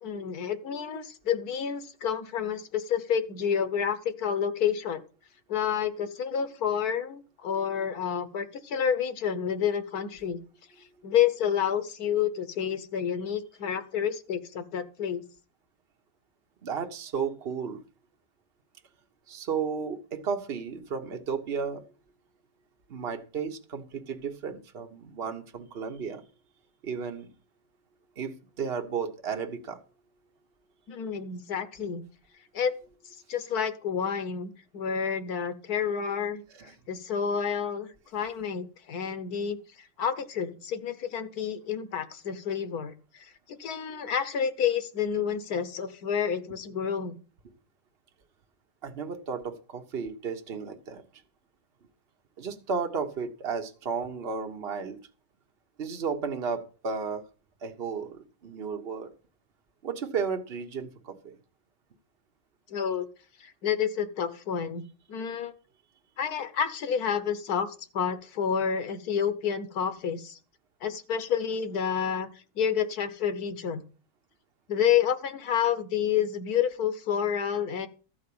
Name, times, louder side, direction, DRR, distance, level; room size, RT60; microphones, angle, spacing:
voice 1, 0.0-5.0 5.5-10.4 11.0-15.2 30.9-32.0 32.5-32.7 33.3-36.4 36.9-39.6 40.0-47.2 62.7-63.1 63.4-64.8 65.1-65.5 66.2-70.4 70.8-72.3 72.6-73.8 74.7-77.9, left 8 dB, 80° left, 1.5 m, -29 dB
voice 2, 16.6-17.8 19.3-21.8 22.9-26.2 26.8-27.3 28.2-29.8 36.5-36.7 48.8-51.0 52.4-55.0 55.8-57.3 57.6-59.1 59.8-61.4, right 6 dB, 45° right, 1.3 m, -33 dB
13.5 x 4.7 x 8.6 m
omnidirectional pair, 1.6 m